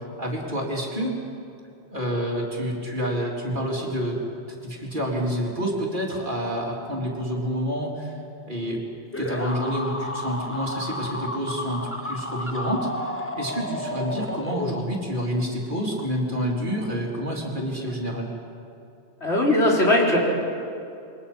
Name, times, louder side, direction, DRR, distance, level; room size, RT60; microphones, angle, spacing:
voice 1, 0.2-1.2 1.9-4.2 4.5-8.1 8.4-8.8 9.2-18.3, equal, 45° right, -2 dB, 3.9 m, -28 dB
sound 1, 9.1-15.2, left 1 dB, 10° left, 1.1 m, -32 dB
voice 2, 19.2-20.2, left 1 dB, 70° left, -3 dB, 4.3 m, -19 dB
28.0 x 23.0 x 5.7 m, 2.6 s
omnidirectional pair, 1.2 m